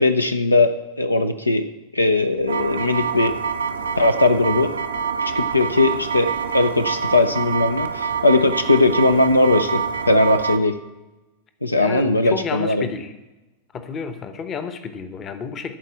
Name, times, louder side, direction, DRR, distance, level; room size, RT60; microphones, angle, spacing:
voice 1, 0.0-1.6 1.9-3.4 4.0-4.7 5.2-9.8 10.1-10.7 11.6-12.9, left 2 dB, 85° left, 9 dB, 0.5 m, -19 dB
sound 1, 2.5-10.6, right 6 dB, 70° right, 0.6 m, -26 dB
voice 2, 11.8-13.1 13.7-15.8, left 6 dB, 25° left, 10 dB, 0.9 m, -31 dB
11.5 x 4.5 x 8.0 m, 1.1 s
figure-of-eight pair, 90°, 0 cm